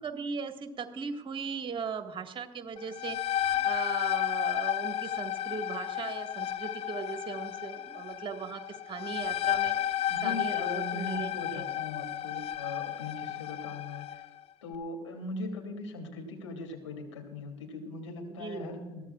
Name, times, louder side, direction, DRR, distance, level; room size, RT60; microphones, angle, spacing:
voice 1, 0.0-3.2 3.6-9.8 10.2-11.6 12.0-12.1 18.3-18.8, right 5 dB, 35° right, 6 dB, 1.8 m, -38 dB
sound 1, 2.8-14.3, left 11 dB, 40° left, 0.6 m, -32 dB
voice 2, 10.1-14.3 14.6-19.0, left 2 dB, 80° left, 2 dB, 2.9 m, -39 dB
22.0 x 15.0 x 2.4 m, 1.0 s
figure-of-eight pair, 60°, 15 cm